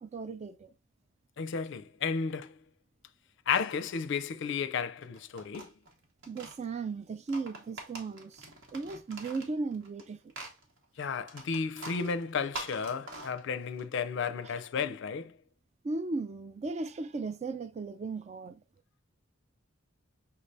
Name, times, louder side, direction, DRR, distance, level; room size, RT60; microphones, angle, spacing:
voice 1, 0.0-0.7 6.3-10.3 14.4-14.5 15.8-18.6, right 3 dB, 35° right, 0.3 m, -36 dB
voice 2, 1.4-2.5 3.5-5.7 11.0-15.3, left 6 dB, 60° left, 0.4 m, -33 dB
sound 1, 5.0-6.6 7.1-10.0 10.3-13.8, right 2 dB, 65° right, 1.2 m, -45 dB
5.6 x 3.3 x 2.6 m
head